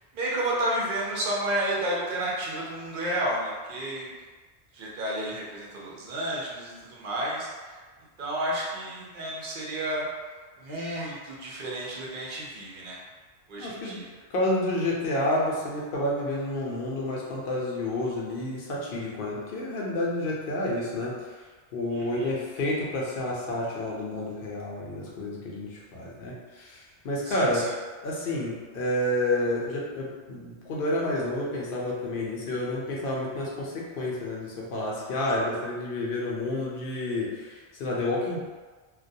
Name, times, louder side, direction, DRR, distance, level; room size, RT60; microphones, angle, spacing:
voice 1, 0.1-4.1 4.7-7.8 8.2-10.1 10.6-13.0 13.5-14.1 21.9-22.3 27.2-27.6, right 1 dB, 55° right, -4 dB, 0.7 m, -31 dB
voice 2, 13.6-14.0 14.3-21.1 21.7-27.7 28.0-38.4, left 1 dB, 60° left, -4 dB, 0.7 m, -29 dB
2.2 x 2.1 x 2.6 m, 1.4 s
omnidirectional pair, 1.2 m